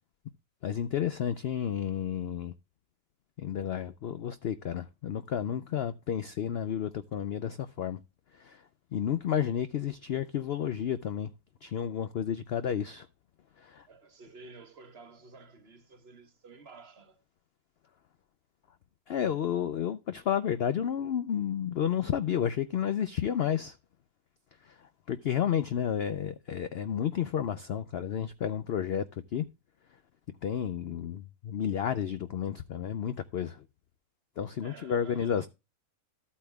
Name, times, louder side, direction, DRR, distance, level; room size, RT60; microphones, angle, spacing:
voice 1, 0.6-2.5 3.4-8.0 8.3-8.6 8.9-11.3 11.6-13.1 13.6-13.9 19.1-23.8 24.6-29.4 30.4-33.6 34.4-35.5, left 9 dB, 70° left, 0.5 m, -31 dB
voice 2, 13.9-17.2 34.6-35.5, right 4 dB, 45° right, 1.2 m, -51 dB
13.5 x 8.5 x 2.2 m
omnidirectional pair, 1.7 m